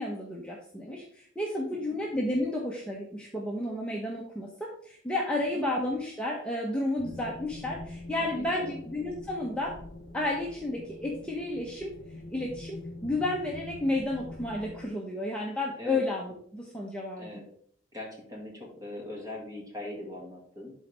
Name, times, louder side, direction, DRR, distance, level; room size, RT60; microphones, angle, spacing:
voice 1, 0.0-9.8 10.1-11.9 12.3-17.3, left 1 dB, 5° left, -3 dB, 0.9 m, -32 dB
sound 1, 7.0-14.9, left 2 dB, 65° left, 0.9 m, -44 dB
voice 2, 8.2-8.7 15.8-16.0 17.2-17.5 17.9-20.7, left 1 dB, 20° right, -1 dB, 2.2 m, -41 dB
11.5 x 4.1 x 3.4 m, 0.64 s
head